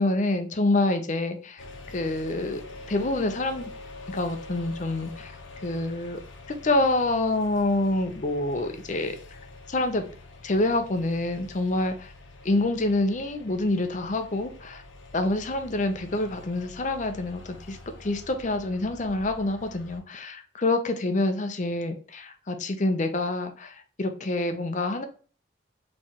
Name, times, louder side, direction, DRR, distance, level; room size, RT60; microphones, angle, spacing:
voice 1, 0.0-1.6 1.9-2.6 2.9-3.7 4.1-5.3 5.6-6.2 6.6-9.2 9.7-10.1 10.4-12.1 12.4-14.8 15.1-25.1, left 2 dB, 40° left, 0.6 m, -27 dB
sound 1, 1.6-20.0, left 2 dB, 85° left, 0.9 m, -46 dB
4.6 x 3.2 x 2.9 m
head